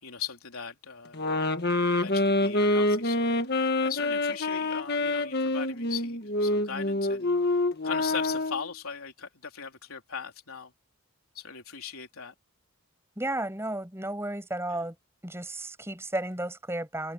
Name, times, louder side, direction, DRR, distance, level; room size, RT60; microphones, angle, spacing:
voice 1, 0.0-1.3 2.0-7.3 7.8-10.7 11.3-12.3 14.7-14.9, left 7 dB, 85° left, 3.8 m, -39 dB
sound 1, 1.1-8.7, left 2 dB, 50° left, 1.6 m, -26 dB
voice 2, 13.2-15.0 15.2-17.1, right 1 dB, 10° right, 7.1 m, -33 dB
open air
head